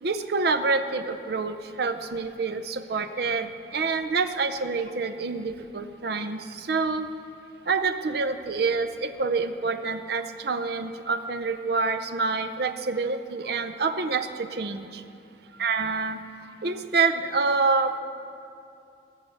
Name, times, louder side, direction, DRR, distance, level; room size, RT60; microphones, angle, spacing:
voice 1, 0.0-7.1 7.7-15.0 15.6-16.2 16.6-18.0, right 4 dB, 60° right, 9 dB, 0.5 m, -27 dB
15.5 x 6.7 x 6.9 m, 2.5 s
head